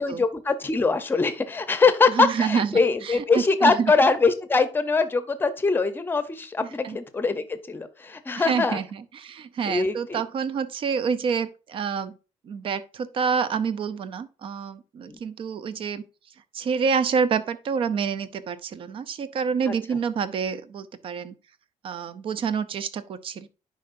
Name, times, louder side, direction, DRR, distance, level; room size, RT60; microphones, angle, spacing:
voice 1, 0.0-8.8 9.7-10.2 15.1-15.2 19.7-19.8, left 4 dB, 15° left, 0.7 m, -23 dB
voice 2, 2.1-3.9 6.8-7.0 8.4-12.2 12.4-16.0 16.5-21.3 21.8-23.5, right 6 dB, 45° right, 0.5 m, -27 dB
10.5 x 4.8 x 2.6 m
cardioid pair, 150°, 13 cm